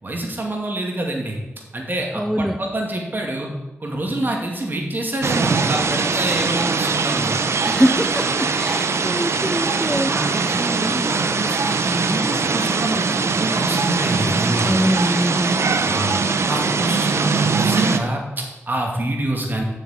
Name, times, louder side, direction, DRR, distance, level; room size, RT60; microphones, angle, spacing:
voice 1, 0.0-1.4 1.7-3.5 3.8-7.3 10.1-14.8 15.8-16.1 16.4-19.6, right 1 dB, 45° right, 0 dB, 2.6 m, -26 dB
voice 2, 2.1-2.6 7.6-10.1 10.9-11.1 14.6-15.6, equal, 5° right, 8 dB, 0.5 m, -23 dB
sound 1, 5.2-18.0, right 4 dB, 70° right, 0.7 m, -21 dB
7.6 x 6.6 x 7.6 m, 1.0 s
cardioid pair, 55°, 5 cm